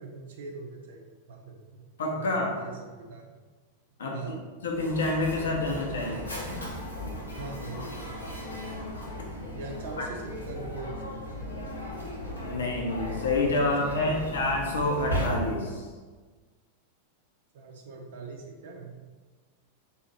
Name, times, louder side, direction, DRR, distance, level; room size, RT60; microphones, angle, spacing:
voice 1, 0.0-1.8 2.1-3.2 4.1-4.4 7.4-8.1 9.5-11.8 12.5-12.9 13.6-14.4 17.5-18.9, right 3 dB, 60° right, 0 dB, 0.7 m, -42 dB
voice 2, 2.0-2.6 4.0-4.2 4.6-6.3 12.4-15.9, left 2 dB, 65° left, -1 dB, 0.8 m, -28 dB
Mechanisms, 4.7-15.8, equal, 80° left, 1.2 m, -36 dB
4.0 x 2.9 x 4.1 m, 1.4 s
figure-of-eight pair, 90°, 0 cm